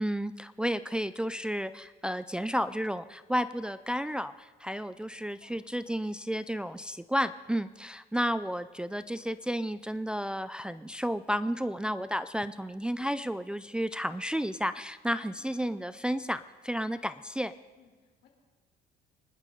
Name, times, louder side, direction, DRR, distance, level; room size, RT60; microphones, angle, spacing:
voice 1, 0.0-17.5, equal, 5° right, 12 dB, 0.4 m, -32 dB
voice 2, 4.8-5.5 15.2-15.6 16.9-17.2 17.7-18.3, left 6 dB, 75° left, 1 dB, 3.9 m, -61 dB
25.0 x 11.5 x 3.9 m, 1.3 s
cardioid pair, 110°, 17 cm